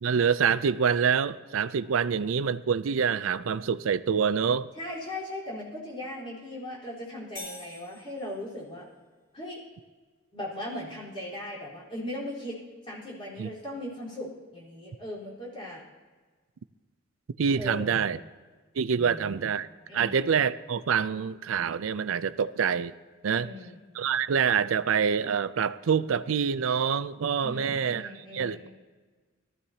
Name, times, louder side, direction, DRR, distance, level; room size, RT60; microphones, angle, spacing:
voice 1, 0.0-4.7 13.4-13.5 17.4-18.2 18.8-19.7 19.9-22.9 23.2-23.5 23.9-28.7, right 6 dB, 85° right, 15 dB, 0.4 m, -26 dB
voice 2, 4.8-8.9 9.3-9.6 10.3-12.6 12.8-15.8 17.5-18.2 18.9-19.5 19.9-20.4 23.3-23.8 27.4-28.7, left 1 dB, 25° left, -6 dB, 4.0 m, -38 dB
sound 1, 7.4-8.7, left 2 dB, 65° left, 5.1 m, -45 dB
18.5 x 13.5 x 2.8 m, 1.4 s
head